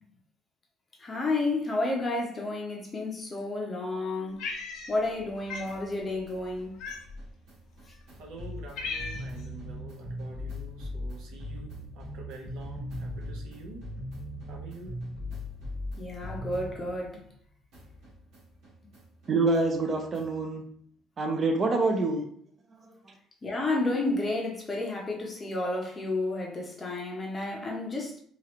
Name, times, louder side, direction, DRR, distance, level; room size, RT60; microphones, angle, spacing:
voice 1, 1.0-4.5 4.9-6.8 16.0-17.2 23.4-28.2, left 2 dB, 15° left, 0.6 m, -31 dB
Cat, 4.4-5.2 5.5-5.7 6.8-7.3 8.0-8.1 8.4-9.4, left 4 dB, 65° left, 0.6 m, -37 dB
sound 1, 5.1-17.4 17.7-20.5, left 1 dB, 55° right, 1.2 m, -40 dB
voice 2, 8.2-13.9 14.5-14.9, right 3 dB, 75° right, 0.9 m, -46 dB
voice 3, 19.3-20.6 21.2-22.2 22.7-22.9, right 3 dB, 25° right, 0.5 m, -26 dB
3.0 x 2.4 x 2.9 m
cardioid pair, 175°, 0 cm